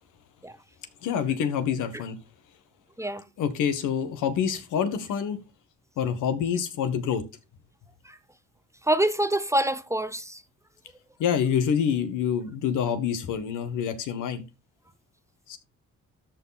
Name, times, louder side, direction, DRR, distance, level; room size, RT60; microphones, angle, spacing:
voice 1, 1.0-2.2 3.4-5.4 6.0-7.2 11.2-14.4 15.5-15.6, left 8 dB, 85° left, 1.6 m, -27 dB
voice 2, 8.8-10.4, right 1 dB, 10° right, 0.7 m, -26 dB
13.5 x 4.5 x 4.2 m
cardioid pair, 90°, 30 cm